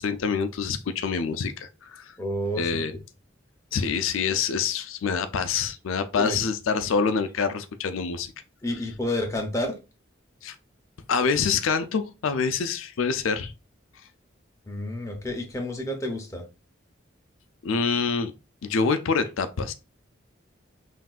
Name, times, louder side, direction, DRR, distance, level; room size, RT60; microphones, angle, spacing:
voice 1, 0.0-2.1 2.6-2.9 3.7-8.3 10.4-10.6 11.1-13.5 17.6-18.3 18.6-19.7, left 5 dB, 85° left, 0.4 m, -26 dB
voice 2, 2.2-2.8 6.2-6.4 8.6-9.7 14.7-16.4, left 1 dB, 15° left, 0.8 m, -30 dB
5.8 x 2.6 x 2.4 m
head